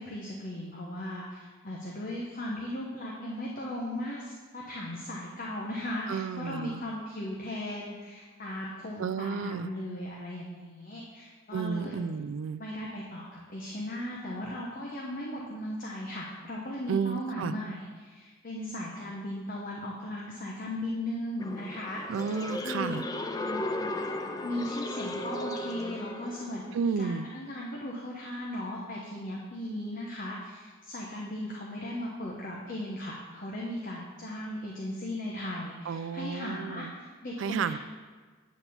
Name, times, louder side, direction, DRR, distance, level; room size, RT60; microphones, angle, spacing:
voice 1, 0.0-12.0 12.6-22.4 22.6-23.0 24.4-37.8, left 1 dB, 40° left, -3 dB, 1.0 m, -37 dB
voice 2, 6.1-6.8 9.0-9.7 11.5-12.6 16.9-17.5 22.1-23.0 26.7-27.3 35.9-36.9 37.4-37.8, right 6 dB, 70° right, 14 dB, 0.3 m, -32 dB
sound 1, 21.4-26.7, left 1 dB, 20° left, 0.4 m, -35 dB
8.9 x 4.2 x 6.9 m, 1.4 s
head